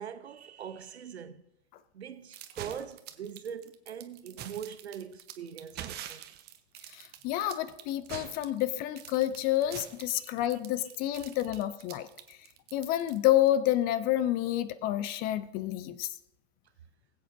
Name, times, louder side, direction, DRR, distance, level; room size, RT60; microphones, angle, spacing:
voice 1, 0.0-1.4 1.9-6.2 10.1-10.3 11.2-11.3, right 8 dB, 70° right, 0.8 m, -42 dB
sound 1, 2.3-13.5, right 11 dB, 30° right, 0.9 m, -45 dB
voice 2, 6.9-12.4 12.7-16.1, left 13 dB, 30° left, 0.5 m, -29 dB
21.0 x 7.9 x 2.6 m
figure-of-eight pair, 90°, 33 cm